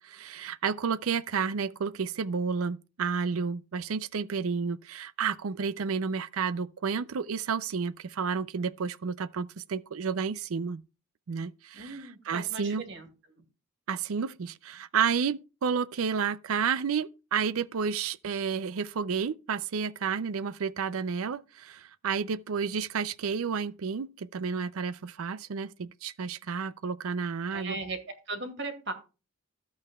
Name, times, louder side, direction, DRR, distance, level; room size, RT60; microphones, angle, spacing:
voice 1, 0.0-10.8 11.3-12.0 12.3-12.8 13.9-27.8, right 6 dB, 85° right, 0.5 m, -31 dB
voice 2, 11.7-13.1 13.4-13.5 27.5-28.0 28.3-28.9, right 3 dB, 55° right, 2.2 m, -37 dB
13.0 x 8.6 x 2.3 m
head